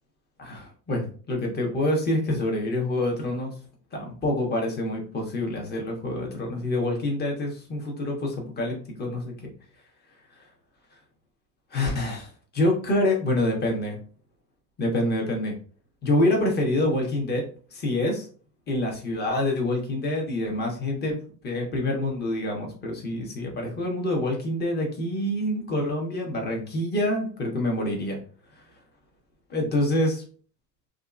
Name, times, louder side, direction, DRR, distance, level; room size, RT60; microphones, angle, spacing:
voice 1, 0.4-3.5 3.9-9.5 10.3-10.4 11.7-14.0 14.8-15.5 16.0-18.3 18.7-21.2 21.4-28.2 28.5-28.6 29.5-30.2, left 1 dB, 20° left, 0 dB, 0.9 m, -26 dB
2.7 x 2.4 x 2.4 m, 0.42 s
hypercardioid pair, 95°, 49 cm